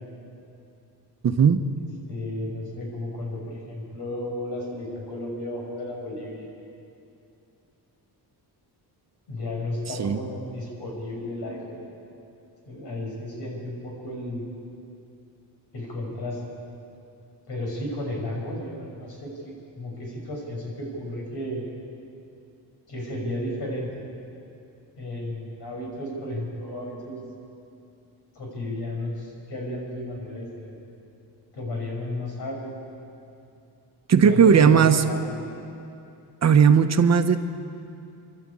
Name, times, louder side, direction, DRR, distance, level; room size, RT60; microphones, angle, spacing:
voice 1, 1.2-1.6 9.9-10.2 34.1-35.0 36.4-37.4, right 7 dB, 40° right, 8 dB, 0.9 m, -17 dB
voice 2, 2.1-6.5 9.3-11.8 12.7-14.4 15.7-16.4 17.5-21.6 22.9-24.0 25.0-27.2 28.3-30.8 31.5-32.8 34.2-35.4, left 1 dB, 85° left, -1 dB, 6.4 m, -33 dB
28.0 x 12.0 x 8.7 m, 2.6 s
wide cardioid pair, 175°, 39 cm